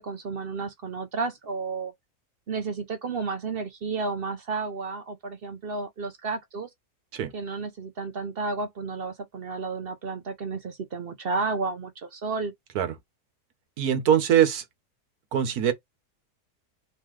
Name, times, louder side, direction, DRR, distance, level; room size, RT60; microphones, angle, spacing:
voice 1, 0.0-1.9 2.5-6.7 7.3-12.5, right 4 dB, 55° right, 0.6 m, -32 dB
voice 2, 13.8-14.6 15.3-15.7, right 9 dB, 70° right, 1.4 m, -22 dB
3.7 x 3.2 x 3.1 m
omnidirectional pair, 1.7 m